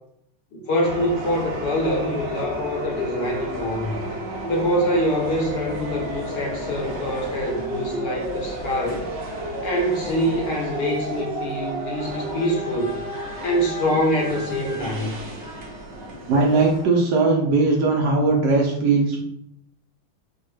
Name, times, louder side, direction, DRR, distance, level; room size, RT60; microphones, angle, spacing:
voice 1, 0.5-3.9 4.5-9.0 9.6-13.0 13.4-15.1, equal, 65° left, -1 dB, 1.2 m, -25 dB
sound 1, 0.8-16.8, right 1 dB, 55° right, 0.8 m, -32 dB
voice 2, 16.3-19.2, right 3 dB, 70° right, -1 dB, 1.1 m, -19 dB
4.7 x 2.1 x 3.2 m, 0.78 s
omnidirectional pair, 2.1 m